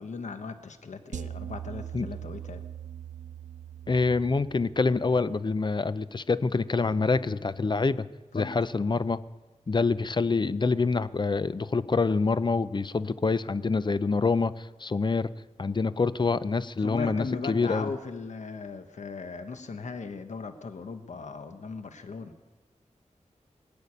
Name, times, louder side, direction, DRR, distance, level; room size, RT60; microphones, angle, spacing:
voice 1, 0.0-2.6 8.3-8.6 16.8-22.4, left 4 dB, 70° left, 8 dB, 1.1 m, -38 dB
sound 1, 1.1-5.4, right 9 dB, 85° right, 0.6 m, -41 dB
voice 2, 3.9-8.1 8.3-9.2 9.7-15.3 15.6-17.9, left 4 dB, 40° left, 15 dB, 0.6 m, -26 dB
20.5 x 6.9 x 9.8 m, 1.3 s
wide cardioid pair, 90°, 12 cm